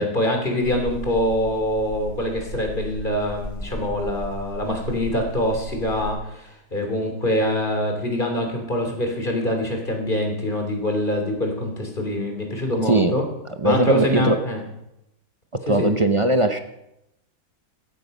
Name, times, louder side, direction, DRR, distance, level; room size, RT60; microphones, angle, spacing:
voice 1, 0.0-13.2 13.6-14.6 15.7-15.9, left 1 dB, 30° left, 3 dB, 3.2 m, -24 dB
sound 1, 0.6-6.1, equal, 15° left, 6.4 m, -36 dB
voice 2, 13.6-14.4 15.7-16.6, right 1 dB, 35° right, 8 dB, 0.5 m, -19 dB
15.5 x 13.0 x 5.4 m, 0.87 s
omnidirectional pair, 1.7 m